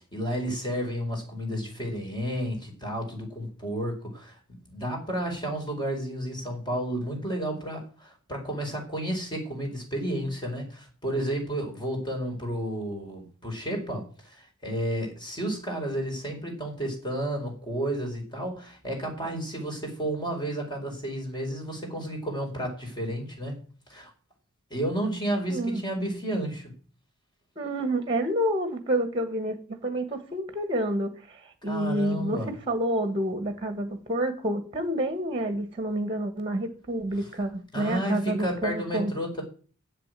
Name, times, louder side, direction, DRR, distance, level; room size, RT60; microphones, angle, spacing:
voice 1, 0.1-23.6 23.9-24.1 24.7-26.7 31.6-32.5 37.7-39.4, right 1 dB, 20° left, 1 dB, 4.7 m, -32 dB
voice 2, 25.5-25.8 27.6-32.4 32.7-39.1, right 1 dB, 25° right, 8 dB, 1.6 m, -28 dB
8.3 x 7.7 x 8.9 m, 0.40 s
head